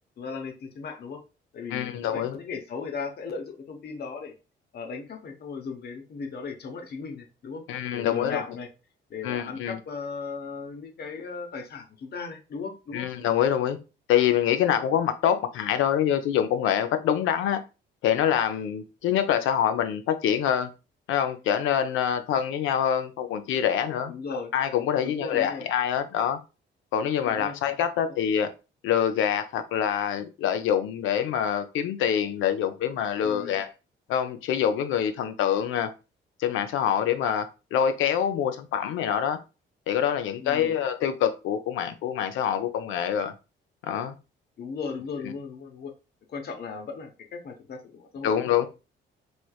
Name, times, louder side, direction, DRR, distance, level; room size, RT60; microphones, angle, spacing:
voice 1, 0.2-1.2 1.5-4.3 4.7-7.6 7.9-8.7 9.1-13.1 24.1-24.5 25.0-25.7 27.2-27.6 33.2-33.6 40.4-40.7 44.6-45.9 46.3-48.3, left 5 dB, 55° left, 4 dB, 0.8 m, -37 dB
voice 2, 1.7-2.4 7.7-8.4 9.2-9.8 12.9-13.8 14.1-17.6 18.0-20.7 21.1-26.4 26.9-28.5 28.8-33.7 34.1-35.9 36.4-39.4 39.9-43.3 43.8-44.2 48.2-48.7, left 9 dB, 85° left, 9 dB, 0.5 m, -25 dB
3.2 x 3.0 x 2.2 m, 0.30 s
cardioid pair, 90°, 20 cm